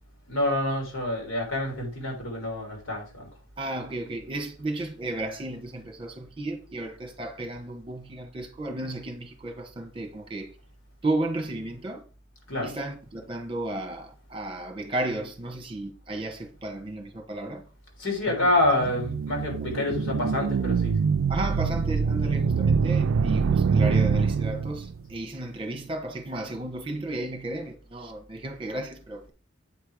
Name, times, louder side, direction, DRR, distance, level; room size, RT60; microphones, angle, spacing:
voice 1, 0.3-3.3 12.5-12.7 18.0-21.0, left 1 dB, 80° left, 3.4 m, -27 dB
voice 2, 3.6-10.5 11.0-12.0 12.6-17.6 18.3-18.5 19.6-20.0 21.3-29.3, right 2 dB, 25° right, 1.4 m, -33 dB
sound 1, 18.6-25.0, right 5 dB, 80° right, 0.4 m, -24 dB
8.4 x 4.6 x 5.0 m
head